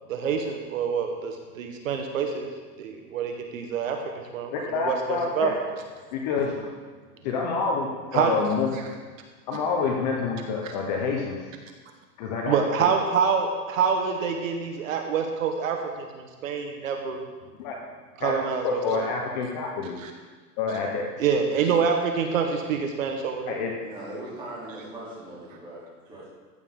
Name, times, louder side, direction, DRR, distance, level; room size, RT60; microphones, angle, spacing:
voice 1, 0.1-5.5 8.1-8.4 10.6-10.7 12.5-17.3 18.2-19.0 20.0-20.1 21.2-23.5, right 6 dB, 55° right, 4 dB, 1.2 m, -26 dB
voice 2, 4.5-5.5 6.1-6.6 7.2-7.9 8.1-8.7 9.5-11.4 12.2-12.6 17.6-17.7 18.2-18.3 18.6-20.0 20.6-21.0 23.5-23.7, left 5 dB, 25° left, 0 dB, 0.9 m, -27 dB
voice 3, 23.8-26.3, right 1 dB, 10° right, -8 dB, 3.1 m, -40 dB
14.5 x 9.1 x 3.7 m, 1.5 s
supercardioid pair, 170°, 48 cm